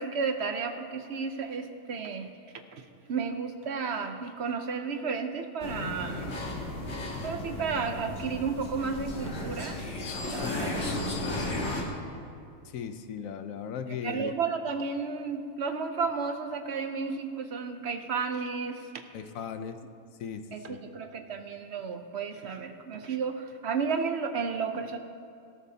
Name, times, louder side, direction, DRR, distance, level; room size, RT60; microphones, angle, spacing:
voice 1, 0.0-2.3 2.7-6.4 7.2-9.8 10.3-11.0 14.0-19.0 20.5-25.0, right 5 dB, 60° right, 7 dB, 0.9 m, -33 dB
sound 1, 5.6-11.8, left 2 dB, 65° left, 1.9 m, -34 dB
voice 2, 10.4-10.7 12.6-14.3 19.1-19.8 20.2-20.8, left 7 dB, 85° left, 9 dB, 1.1 m, -37 dB
17.5 x 13.0 x 2.8 m, 2.5 s
omnidirectional pair, 1.4 m